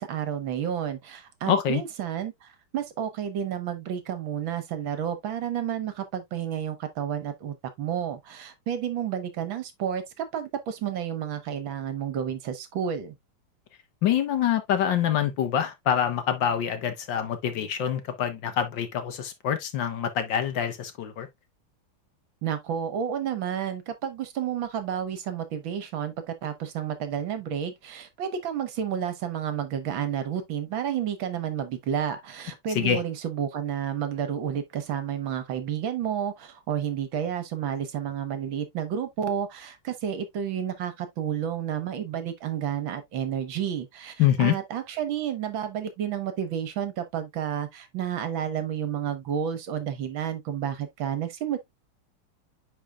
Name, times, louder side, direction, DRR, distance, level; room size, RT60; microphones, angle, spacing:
voice 1, 0.0-13.2 22.4-51.6, right 9 dB, 70° right, 1.7 m, -31 dB
voice 2, 1.5-1.8 14.0-21.3 32.7-33.0 44.2-44.5, left 9 dB, 65° left, 1.5 m, -25 dB
9.9 x 4.3 x 2.3 m
omnidirectional pair, 2.4 m